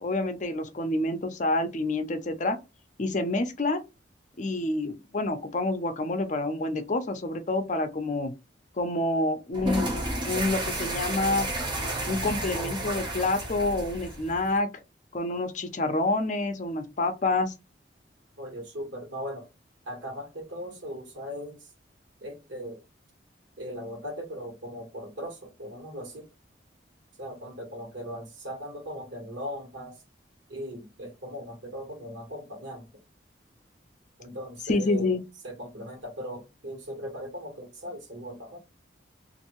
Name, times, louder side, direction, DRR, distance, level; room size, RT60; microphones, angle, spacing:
voice 1, 0.0-2.6 3.0-3.8 4.4-8.3 8.8-9.9 10.3-11.5 12.1-14.7 15.1-17.5 34.7-35.2, left 2 dB, 40° left, 0.5 m, -28 dB
sound 1, 9.5-14.6, right 1 dB, 25° right, 0.7 m, -32 dB
voice 2, 18.4-19.5 19.8-21.7 22.2-22.8 23.6-26.3 27.2-30.0 30.5-32.9 34.2-35.2 35.4-38.6, equal, 90° right, 1.3 m, -39 dB
2.6 x 2.5 x 3.0 m
head